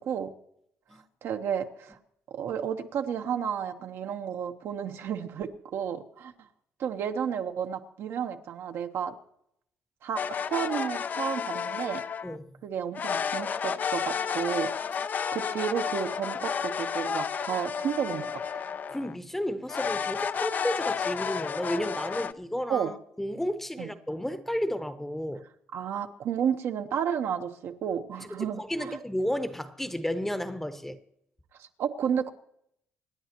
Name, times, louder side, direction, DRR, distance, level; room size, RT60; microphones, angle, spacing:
voice 1, 1.2-2.0 2.3-6.3 6.8-9.1 10.0-10.2 10.5-12.0 12.6-15.0 15.3-18.4 22.7-22.9 23.8-23.9 25.7-29.0 31.6-32.3, right 8 dB, 65° right, 1.0 m, -32 dB
sound 1, 10.1-12.4 12.9-19.1 19.7-22.3, left 7 dB, 40° left, 0.5 m, -31 dB
voice 2, 18.9-25.4 28.6-31.0, equal, 5° left, 0.9 m, -32 dB
26.0 x 10.0 x 3.0 m
cardioid pair, 120°, 5 cm